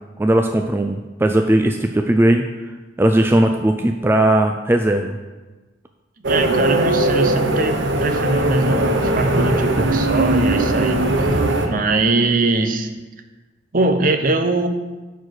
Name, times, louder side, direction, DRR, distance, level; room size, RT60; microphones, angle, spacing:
voice 1, 0.2-2.4 3.0-5.2, right 1 dB, 10° right, 5 dB, 0.3 m, -17 dB
sound 1, 6.2-11.7, right 2 dB, 70° right, 1.0 m, -19 dB
voice 2, 6.3-12.9 13.7-14.7, right 2 dB, 45° right, 8 dB, 0.7 m, -21 dB
9.5 x 4.6 x 6.3 m, 1.2 s
head